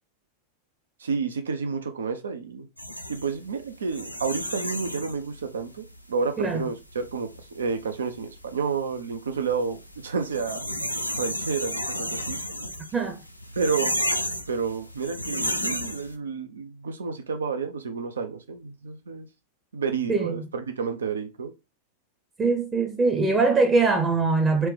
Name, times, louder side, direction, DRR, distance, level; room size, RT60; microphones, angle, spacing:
voice 1, 1.0-2.7 3.1-10.6 11.2-12.4 13.6-14.0 14.5-19.3 19.7-21.5, right 5 dB, 70° right, 0.4 m, -30 dB
sound 1, 2.8-16.2, equal, 90° left, 0.4 m, -33 dB
voice 2, 20.1-20.4 22.4-24.7, right 3 dB, 20° right, 0.7 m, -22 dB
4.3 x 2.2 x 3.2 m
figure-of-eight pair, 90°, 0 cm